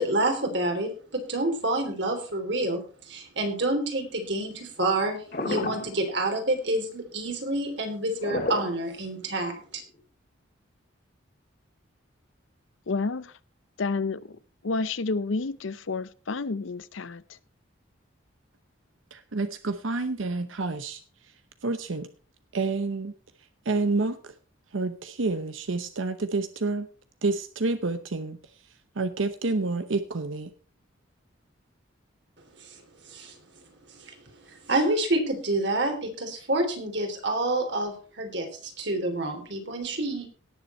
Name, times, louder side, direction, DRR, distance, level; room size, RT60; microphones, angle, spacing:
voice 1, 0.0-9.8 32.6-32.8 33.0-33.4 33.9-34.1 34.5-40.3, right 1 dB, 60° right, 4 dB, 3.2 m, -28 dB
sound 1, 5.3-6.1 8.2-9.3 10.0-10.1, left 2 dB, 50° left, 2.5 m, -31 dB
voice 2, 12.9-13.4 13.8-14.4 14.6-17.4, left 3 dB, 75° left, 17 dB, 0.7 m, -30 dB
voice 3, 19.1-21.0 21.6-22.1 22.5-23.1 23.6-24.3 24.7-26.9 27.2-28.4 29.0-30.5, right 3 dB, 80° right, 10 dB, 0.8 m, -28 dB
18.0 x 7.0 x 4.3 m, 0.39 s
head